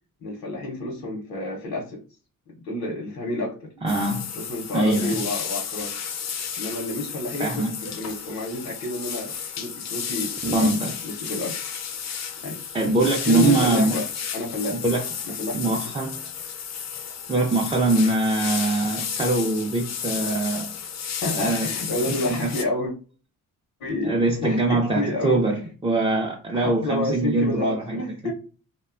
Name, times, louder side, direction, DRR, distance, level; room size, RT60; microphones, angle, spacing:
voice 1, 0.2-2.0 2.5-3.7 4.4-6.0 6.6-11.6 12.4-12.6 13.2-14.1 14.3-14.8 15.2-15.8 21.2-22.9 23.8-25.4 26.5-28.3, left 2 dB, 80° left, 0.7 m, -29 dB
voice 2, 3.8-4.3 4.7-5.2 7.4-7.8 10.4-11.0 12.7-14.0 14.7-15.0 15.5-16.2 17.3-20.7 21.3-21.7 22.0-22.5 24.0-28.0 28.2-28.3, right 2 dB, 15° right, 0.3 m, -23 dB
sound 1, 3.9-22.7, left 7 dB, 50° left, 0.4 m, -32 dB
2.6 x 2.1 x 2.4 m
wide cardioid pair, 105°, 34 cm